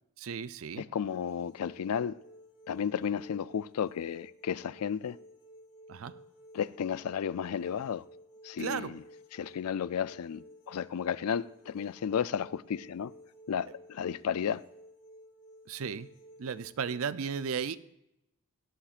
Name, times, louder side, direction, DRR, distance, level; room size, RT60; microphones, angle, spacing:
voice 1, 0.2-0.8 5.9-6.2 8.6-9.0 15.7-16.1 16.4-17.8, right 6 dB, 65° right, 0.5 m, -35 dB
voice 2, 0.8-2.2 2.7-5.2 6.5-8.0 8.4-9.0 9.3-13.1 13.5-14.6, left 7 dB, 90° left, 0.4 m, -33 dB
sound 1, 1.1-17.0, equal, 45° left, 2.2 m, -54 dB
17.5 x 11.5 x 2.5 m
head